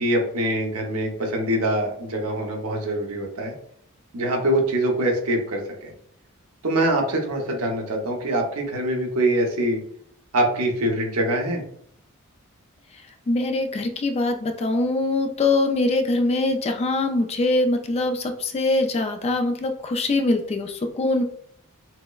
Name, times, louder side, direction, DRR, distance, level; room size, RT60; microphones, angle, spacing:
voice 1, 0.0-3.5 4.1-5.9 6.6-9.8 10.3-11.6, right 1 dB, 70° right, 1 dB, 0.9 m, -24 dB
voice 2, 13.3-21.2, left 2 dB, 30° left, 6 dB, 0.3 m, -23 dB
5.8 x 2.0 x 2.3 m, 0.67 s
head